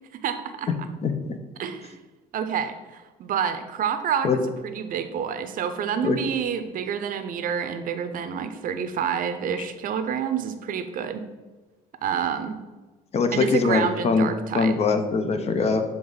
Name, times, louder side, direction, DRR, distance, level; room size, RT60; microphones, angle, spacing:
voice 1, 0.1-0.7 1.6-2.0 2.3-11.3 12.0-12.6 13.3-14.7, right 7 dB, 55° right, 10 dB, 0.6 m, -28 dB
voice 2, 13.1-15.8, left 4 dB, 40° left, 8 dB, 0.7 m, -22 dB
7.0 x 3.6 x 3.9 m, 1.2 s
cardioid pair, 110°, 17 cm